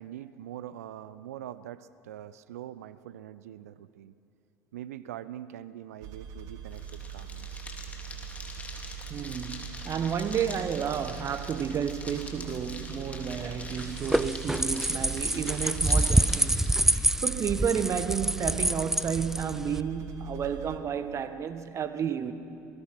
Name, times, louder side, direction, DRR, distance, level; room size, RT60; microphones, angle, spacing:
voice 1, 0.0-4.1 4.7-7.7, right 11 dB, 70° right, 0.6 m, -43 dB
sound 1, 6.0-20.8, right 9 dB, 55° right, 1.7 m, -42 dB
sound 2, 6.7-17.0, left 2 dB, 15° left, 3.3 m, -44 dB
voice 2, 9.1-16.5 17.2-22.3, right 7 dB, 35° right, 1.3 m, -31 dB
sound 3, 13.8-19.8, right 1 dB, 5° right, 0.5 m, -26 dB
27.0 x 20.0 x 6.0 m
figure-of-eight pair, 65°, 9 cm